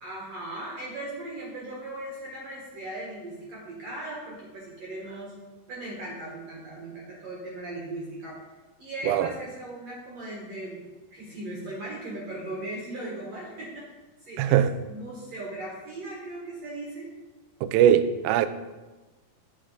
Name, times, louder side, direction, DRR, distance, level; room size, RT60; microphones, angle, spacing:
voice 1, 0.0-5.3 5.7-8.4 8.8-10.8 11.1-13.9 14.2-14.6 14.9-17.1, right 1 dB, 55° right, 2.1 m, -38 dB
voice 2, 14.4-14.7 17.6-18.5, right 10 dB, 80° right, 2.1 m, -20 dB
8.7 x 7.3 x 3.9 m
omnidirectional pair, 4.5 m